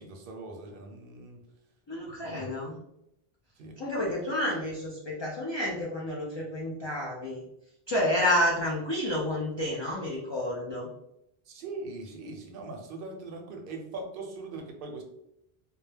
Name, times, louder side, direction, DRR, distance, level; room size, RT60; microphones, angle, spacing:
voice 1, 0.0-1.4 2.1-2.5 3.6-4.1 11.5-15.0, right 3 dB, 65° right, 3 dB, 0.7 m, -41 dB
voice 2, 1.9-2.8 3.8-7.4 7.9-10.9, left 1 dB, 45° left, -4 dB, 0.3 m, -30 dB
2.2 x 2.0 x 3.2 m, 0.80 s
omnidirectional pair, 1.0 m